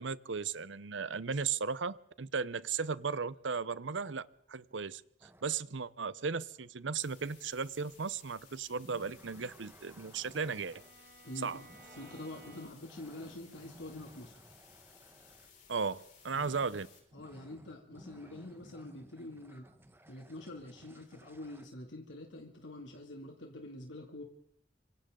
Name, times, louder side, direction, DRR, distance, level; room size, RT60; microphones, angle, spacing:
voice 1, 0.0-5.0 5.4-10.8 11.4-11.6 15.7-16.9, right 5 dB, 85° right, 17 dB, 0.8 m, -36 dB
sound 1, 5.2-5.6 8.8-15.6 16.3-21.7, right 1 dB, 10° right, 1.1 m, -58 dB
sound 2, 7.0-17.0, left 6 dB, 40° left, 5.5 m, -60 dB
Bowed string instrument, 9.2-13.1, right 2 dB, 50° right, 1.7 m, -59 dB
voice 2, 11.2-11.7 11.9-14.4 16.3-16.5 17.1-19.7 20.1-24.2, left 1 dB, 85° left, 1 dB, 2.5 m, -46 dB
27.0 x 25.5 x 3.8 m, 0.65 s
head